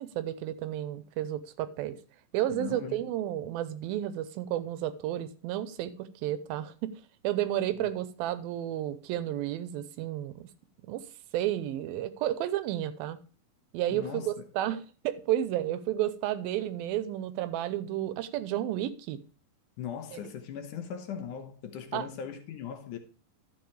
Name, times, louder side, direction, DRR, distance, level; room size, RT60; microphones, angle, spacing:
voice 1, 0.0-2.0 2.3-6.9 7.2-10.5 10.9-11.1 11.3-13.2 13.7-19.2 20.1-20.2 21.9-22.1, right 12 dB, 85° right, 2.5 m, -32 dB
voice 2, 2.5-3.0 7.8-7.9 13.9-14.5 19.8-23.0, left 8 dB, 70° left, 2.3 m, -39 dB
11.5 x 7.4 x 3.3 m
omnidirectional pair, 4.2 m